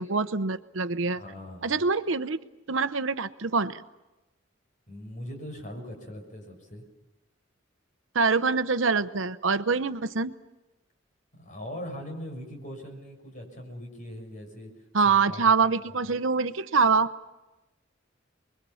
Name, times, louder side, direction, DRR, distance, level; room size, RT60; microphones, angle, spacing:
voice 1, 0.0-1.2 1.6-2.4 2.7-3.8 8.1-10.3 14.9-17.1, right 4 dB, 80° right, 12 dB, 0.9 m, -25 dB
voice 2, 1.1-1.8 4.9-6.8 11.4-14.7 15.0-15.4 15.8-16.0, equal, 40° left, 3 dB, 6.7 m, -40 dB
29.0 x 22.5 x 7.1 m, 1.0 s
head